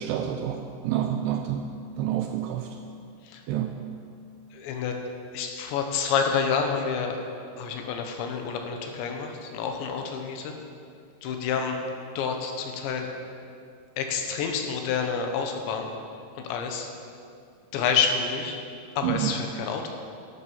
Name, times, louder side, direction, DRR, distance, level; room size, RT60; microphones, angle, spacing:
voice 1, 0.0-1.7 2.0-2.7 3.5-3.9 19.0-19.3, right 10 dB, 85° right, 5 dB, 2.4 m, -28 dB
voice 2, 4.5-5.0 5.3-7.2 7.6-10.5 11.2-11.8 12.2-13.1 14.0-15.9 16.4-16.9 17.7-18.6 19.0-19.9, left 6 dB, 75° left, 4 dB, 3.4 m, -28 dB
12.5 x 12.5 x 5.6 m, 2.4 s
omnidirectional pair, 5.4 m